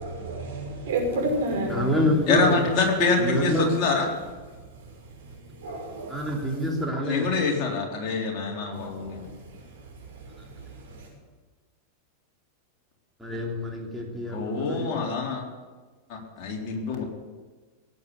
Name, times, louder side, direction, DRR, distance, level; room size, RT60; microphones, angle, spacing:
voice 1, 0.0-1.9 4.5-6.4 8.7-11.1, right 2 dB, 60° right, 0 dB, 6.0 m, -33 dB
voice 2, 1.7-2.7 3.2-3.9 6.1-7.4 13.2-15.0, equal, 5° right, -2 dB, 3.3 m, -27 dB
voice 3, 2.3-4.1 7.0-9.3 14.3-15.4 16.4-17.0, left 4 dB, 40° left, -1 dB, 3.8 m, -25 dB
18.0 x 8.2 x 8.4 m, 1.3 s
figure-of-eight pair, 90°, 0 cm